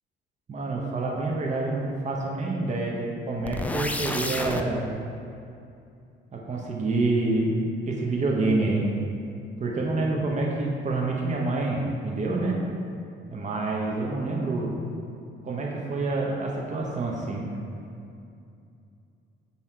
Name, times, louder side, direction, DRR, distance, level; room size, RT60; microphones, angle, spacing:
voice 1, 0.5-4.9 6.3-7.6 7.9-8.9 9.6-12.6 13.3-14.7 15.4-17.4, right 2 dB, 35° right, -2 dB, 0.9 m, -27 dB
sound 1, 3.4-4.6, left 1 dB, 5° left, 0.4 m, -30 dB
7.5 x 2.9 x 4.5 m, 2.5 s
cardioid pair, 90°, 20 cm